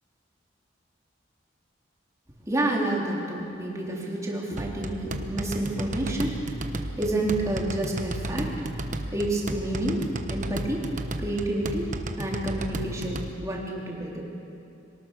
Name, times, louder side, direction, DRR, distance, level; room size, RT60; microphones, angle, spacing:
voice 1, 2.5-6.5 7.0-8.6 9.1-10.9 11.2-11.9 12.2-14.2, right 1 dB, 15° right, -3 dB, 3.5 m, -29 dB
sound 1, 4.6-13.3, right 1 dB, 40° right, 1.1 m, -33 dB
24.0 x 18.5 x 6.5 m, 2.7 s
head